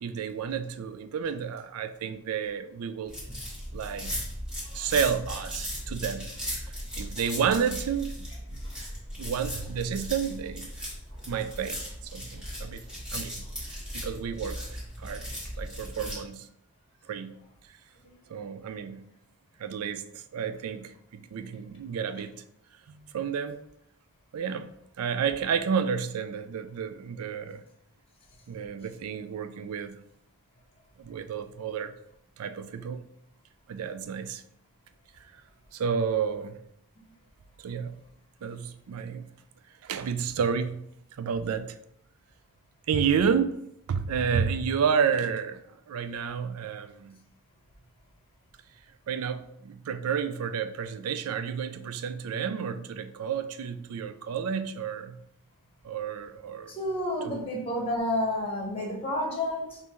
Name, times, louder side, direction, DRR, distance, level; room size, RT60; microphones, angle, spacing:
voice 1, 0.0-3.1 3.7-4.1 4.7-8.3 9.2-10.7 11.3-12.8 13.1-13.5 13.9-14.6 15.0-15.3 15.6-16.5 17.1-17.4 18.3-19.0 19.6-22.3 22.9-23.6 24.3-24.7 25.0-27.6 28.5-30.0 31.0-31.9 32.4-33.0 33.7-34.4 35.7-36.6 37.6-37.9 38.4-39.3 39.8-40.8 41.2-41.8 42.9-43.6 43.9-45.6 45.9-47.2 49.1-55.2 55.8-56.7 57.2-57.5, right 7 dB, 80° right, 0.4 m, -31 dB
sound 1, 3.1-16.2, equal, 5° right, 1.5 m, -37 dB
voice 2, 56.7-59.8, left 1 dB, 25° left, 1.1 m, -30 dB
5.4 x 2.7 x 3.0 m
head